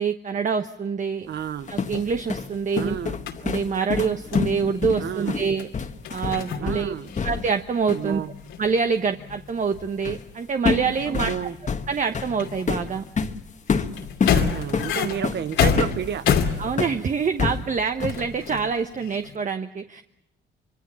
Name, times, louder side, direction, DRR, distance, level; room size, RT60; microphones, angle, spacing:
voice 1, 0.0-1.3 1.7-3.0 3.4-5.7 6.1-6.9 7.2-8.2 8.6-11.3 11.9-13.0 16.6-20.0, right 5 dB, 40° right, 8 dB, 1.1 m, -25 dB
voice 2, 1.3-1.7 2.8-3.3 5.0-5.4 6.6-7.1 7.9-8.3 11.1-11.5 14.3-16.3, right 9 dB, 60° right, 15 dB, 1.0 m, -31 dB
sound 1, 1.4-7.6 7.9-8.1 10.0-10.3 10.6-17.0 17.4-18.3, left 5 dB, 40° left, 1.4 m, -27 dB
sound 2, 1.7-3.5 4.2-4.5 5.6-5.7 5.9-6.7 7.0-17.6 18.0-19.3, left 7 dB, 85° left, 2.5 m, -29 dB
25.0 x 24.5 x 7.0 m, 0.78 s
cardioid pair, 90°, 20 cm